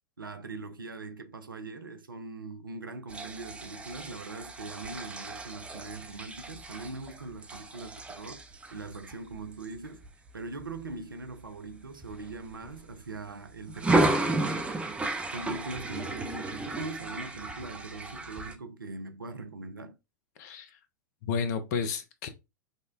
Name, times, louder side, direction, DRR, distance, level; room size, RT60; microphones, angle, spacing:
voice 1, 0.2-8.4 8.7-10.1 10.3-15.0 15.3-20.0, right 3 dB, 85° right, 0.5 m, -41 dB
sound 1, 3.1-10.9 11.4-11.7 12.0-13.2 13.7-18.5, right 2 dB, 10° right, 0.6 m, -33 dB
voice 2, 20.4-20.7 21.2-22.3, left 6 dB, 55° left, 0.7 m, -31 dB
5.2 x 2.1 x 2.4 m
figure-of-eight pair, 95°, 11 cm